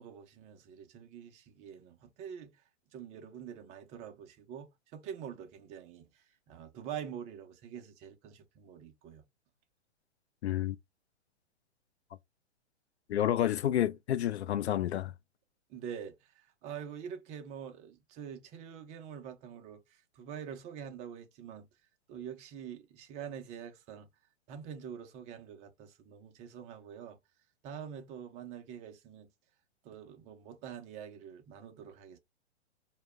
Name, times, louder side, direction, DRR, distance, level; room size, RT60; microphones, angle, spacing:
voice 1, 0.0-2.6 2.9-9.2 15.7-19.8 20.2-21.7 22.1-24.1 24.5-27.2 27.6-29.3 29.8-32.2, right 8 dB, 20° right, 0.5 m, -45 dB
voice 2, 10.4-10.8 13.1-15.1, left 11 dB, 70° left, 0.5 m, -29 dB
2.2 x 2.0 x 3.4 m
hypercardioid pair, 120°, 34 cm